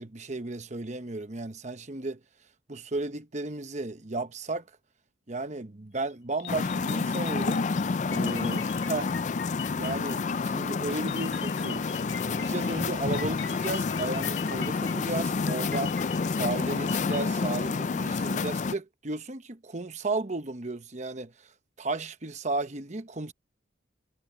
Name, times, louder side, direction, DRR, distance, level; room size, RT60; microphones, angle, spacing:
voice 1, 0.0-2.2 2.7-4.6 5.3-7.7 8.1-9.1 9.8-11.8 12.3-15.9 16.3-21.3 21.8-23.3, right 3 dB, 40° right, 1.0 m, -34 dB
sound 1, 6.1-6.2 6.4-10.4 11.1-17.3, left 10 dB, 80° left, 4.5 m, -43 dB
sound 2, 6.5-18.7, left 4 dB, 40° left, 0.4 m, -29 dB
head